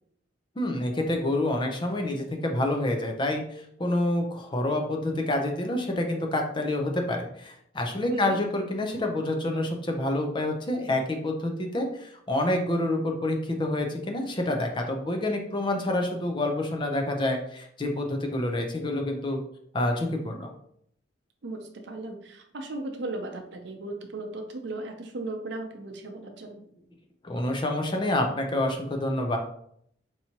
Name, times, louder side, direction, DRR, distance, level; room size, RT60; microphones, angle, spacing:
voice 1, 0.6-19.4 19.7-20.5 27.2-29.4, left 1 dB, 25° left, 3 dB, 0.5 m, -28 dB
voice 2, 21.4-26.6, right 2 dB, 65° right, 4 dB, 0.6 m, -36 dB
4.7 x 2.8 x 2.8 m, 0.69 s
head